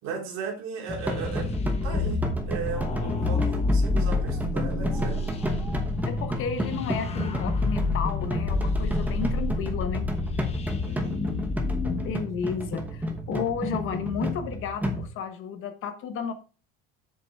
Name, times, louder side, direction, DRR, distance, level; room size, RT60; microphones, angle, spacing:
voice 1, 0.0-1.5 1.8-5.4 10.8-11.3, right 5 dB, 60° right, 1 dB, 3.0 m, -36 dB
sound 1, 0.9-15.1, equal, 5° right, 1.0 m, -32 dB
sound 2, 1.0-12.1, left 3 dB, 20° left, 1.0 m, -29 dB
voice 2, 6.1-10.1 12.0-16.3, left 6 dB, 45° left, 8 dB, 1.2 m, -32 dB
7.9 x 6.8 x 3.5 m, 0.36 s
cardioid pair, 170°, 30 cm